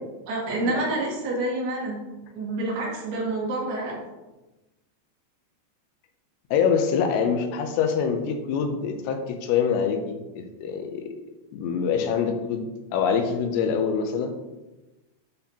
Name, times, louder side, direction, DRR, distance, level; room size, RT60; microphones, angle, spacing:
voice 1, 0.3-2.0 2.3-4.0, right 2 dB, 70° right, -4 dB, 3.5 m, -28 dB
voice 2, 6.5-11.1 11.5-14.3, left 6 dB, 80° left, 5 dB, 2.9 m, -25 dB
12.0 x 4.2 x 2.9 m, 1.1 s
omnidirectional pair, 5.1 m